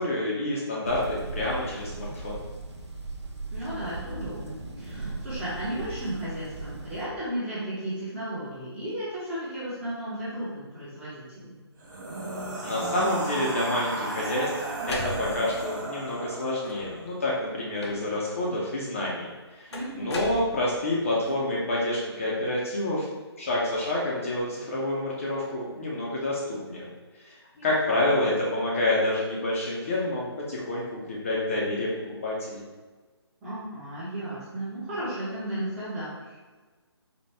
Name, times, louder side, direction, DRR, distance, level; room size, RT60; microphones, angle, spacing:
voice 1, 0.0-2.4 12.6-14.5 14.9-19.3 19.5-23.1 23.4-26.9 27.3-27.4 27.6-31.9 32.2-32.6, left 1 dB, 30° left, -5 dB, 0.6 m, -28 dB
sound 1, 0.8-7.1, right 3 dB, 90° right, 0.6 m, -38 dB
voice 2, 3.5-11.6 19.7-20.1 27.6-28.0 33.4-36.5, right 1 dB, 5° right, -11 dB, 0.7 m, -34 dB
sound 2, 11.8-17.0, right 2 dB, 45° right, 0.7 m, -34 dB
sound 3, 14.2-15.7 16.6-17.1 17.8-18.3 19.7-21.0, left 1 dB, 70° left, 0.7 m, -38 dB
4.2 x 2.2 x 3.3 m, 1.3 s
hypercardioid pair, 160°, 14 cm